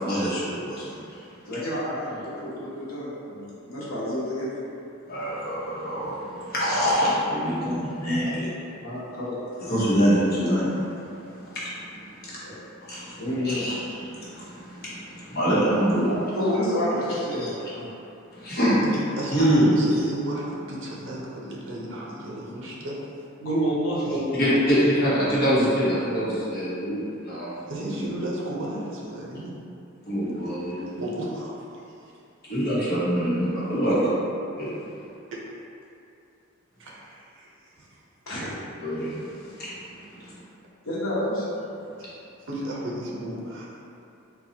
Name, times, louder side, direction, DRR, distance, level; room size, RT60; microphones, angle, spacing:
voice 1, 0.0-0.4 0.7-0.8 5.1-6.1 6.5-8.3 9.7-10.7 12.9-13.0 13.4-13.8 15.3-16.1 18.4-18.8 19.3-19.8 24.4-27.0 27.3-27.5 30.1-30.7 32.5-34.1 34.6-34.7 38.8-39.1, equal, 50° left, -9 dB, 1.0 m, -23 dB
voice 2, 1.5-4.5 7.6-7.7 8.8-9.7 12.4-12.5 13.2-13.7 16.3-17.9 23.4-24.1 33.8-33.9 38.3-38.5 40.8-41.5, equal, 90° left, -8 dB, 1.0 m, -29 dB
voice 3, 18.8-23.0 24.1-24.4 27.7-29.5 30.9-31.6 32.0-32.1 35.3-35.4 36.8-37.5 37.8-38.0 42.5-43.8, right 1 dB, 65° right, -4 dB, 0.6 m, -33 dB
3.9 x 2.3 x 2.8 m, 2.7 s
head